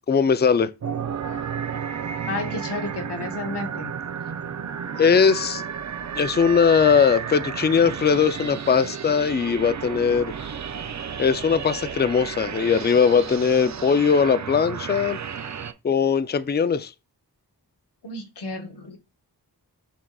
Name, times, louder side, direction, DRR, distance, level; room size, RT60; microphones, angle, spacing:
voice 1, 0.1-0.7 5.0-5.6 6.2-10.3 11.2-15.2 15.8-16.9, left 6 dB, 25° left, 0.4 m, -20 dB
sound 1, 0.8-15.7, right 7 dB, 45° right, 0.5 m, -32 dB
voice 2, 2.3-3.9 18.0-19.0, left 2 dB, 90° left, 1.1 m, -31 dB
6.1 x 3.6 x 2.3 m
cardioid pair, 45°, 39 cm